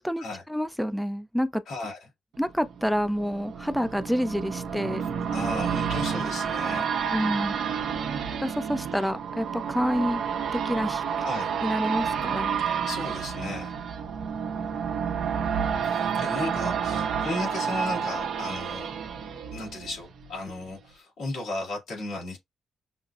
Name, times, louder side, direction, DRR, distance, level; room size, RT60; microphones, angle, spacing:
voice 1, 0.0-1.6 2.4-5.0 7.1-7.6 8.4-10.2 10.5-11.0 11.6-12.6, equal, ahead, 0.5 m, -28 dB
voice 2, 1.7-2.1 5.0-6.9 11.2-11.5 12.9-13.7 15.8-18.9 19.5-22.4, left 2 dB, 80° left, 2.3 m, -35 dB
sound 1, 2.5-20.3 20.7-20.8, right 7 dB, 80° right, 0.7 m, -30 dB
5.9 x 2.0 x 2.4 m
cardioid pair, 70°, 0 cm